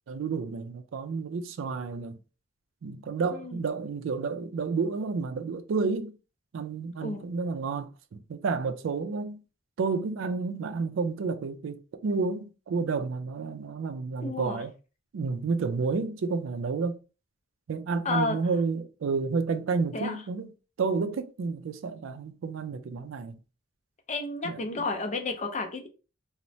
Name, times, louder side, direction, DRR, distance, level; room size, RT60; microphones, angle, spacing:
voice 1, 0.1-2.2 2.8-6.2 6.5-9.4 9.8-14.7 15.1-17.0 17.7-20.5 20.8-23.4 24.4-24.8, right 4 dB, 80° right, 0.4 m, -30 dB
voice 2, 14.2-14.6 18.0-18.4 19.9-20.2 24.1-25.9, left 3 dB, 35° left, 0.5 m, -31 dB
3.0 x 2.1 x 2.6 m
head